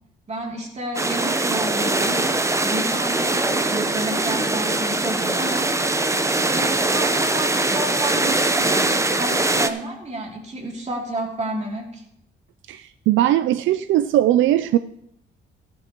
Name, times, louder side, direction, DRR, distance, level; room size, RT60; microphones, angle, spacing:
voice 1, 0.3-5.8 6.5-12.0, right 1 dB, 35° right, 2.8 m, -31 dB
sound 1, 0.9-9.7, right 2 dB, 15° right, 0.8 m, -22 dB
voice 2, 12.7-14.8, right 13 dB, 75° right, 0.4 m, -19 dB
14.0 x 11.5 x 3.0 m
cardioid pair, 90°, 20 cm